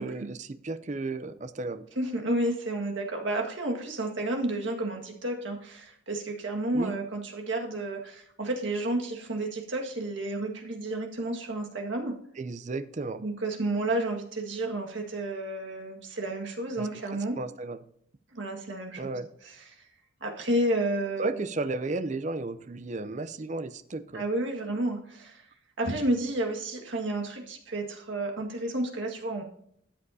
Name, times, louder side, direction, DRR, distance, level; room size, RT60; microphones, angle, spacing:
voice 1, 0.0-1.9 6.7-6.9 12.4-13.2 16.8-16.9 17.4-17.8 19.0-19.3 21.2-24.2, right 3 dB, 35° right, 12 dB, 0.5 m, -34 dB
voice 2, 2.0-12.1 13.2-17.4 18.3-19.8 20.2-21.4 24.1-25.4 25.8-29.4, right 1 dB, 70° right, 1 dB, 1.8 m, -31 dB
13.0 x 7.7 x 2.7 m, 0.70 s
head